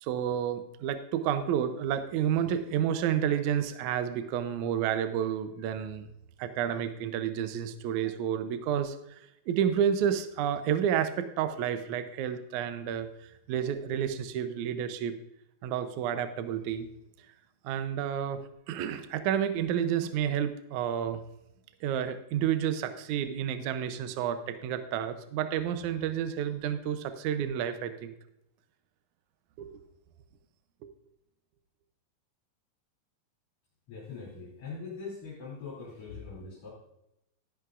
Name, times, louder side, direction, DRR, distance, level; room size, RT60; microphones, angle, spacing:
voice 1, 0.0-6.1 6.4-9.2 9.5-13.1 13.5-15.1 15.6-16.9 17.6-18.4 18.7-21.2 21.8-28.1 29.6-29.7, right 9 dB, 75° right, 9 dB, 1.9 m, -30 dB
voice 2, 33.9-36.7, left 4 dB, 50° left, -6 dB, 3.7 m, -42 dB
12.5 x 10.5 x 2.5 m, 0.84 s
omnidirectional pair, 3.9 m